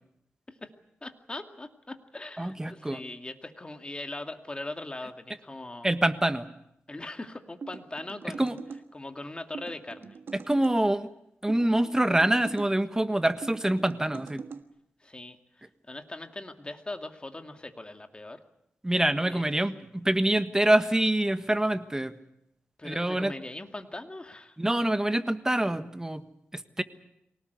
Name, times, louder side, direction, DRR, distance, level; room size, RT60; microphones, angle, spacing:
voice 1, 1.0-5.9 6.9-8.6 8.9-10.2 15.0-18.4 19.3-19.4 22.8-24.6, left 2 dB, 25° left, 6 dB, 2.3 m, -40 dB
voice 2, 2.4-3.0 5.8-6.4 8.4-8.5 10.5-11.1 11.4-14.4 18.8-22.1 22.8-23.3 24.6-26.2 26.5-26.8, right 1 dB, 15° right, 10 dB, 1.5 m, -25 dB
sound 1, 7.6-8.8 9.5-10.8 11.5-12.7 13.4-14.6, right 5 dB, 70° right, 1.5 m, -42 dB
24.0 x 18.5 x 8.1 m, 0.80 s
cardioid pair, 75°, 4 cm